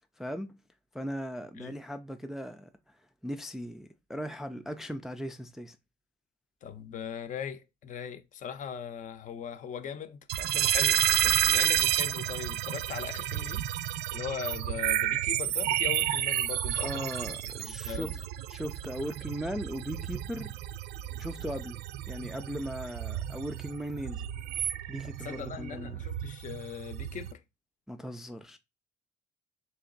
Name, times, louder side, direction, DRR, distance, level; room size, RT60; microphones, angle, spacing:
voice 1, 0.2-0.6 0.9-2.7 3.2-5.8 16.8-18.1 18.5-20.5 21.2-21.8 22.1-24.3 24.9-26.0 27.9-28.6, equal, ahead, 0.3 m, -38 dB
voice 2, 6.6-13.6 14.1-17.1 17.6-18.1 25.0-27.4, left 8 dB, 50° left, 0.6 m, -40 dB
sound 1, 10.3-27.3, right 13 dB, 75° right, 0.4 m, -31 dB
3.4 x 2.8 x 3.9 m
cardioid pair, 110°, 17 cm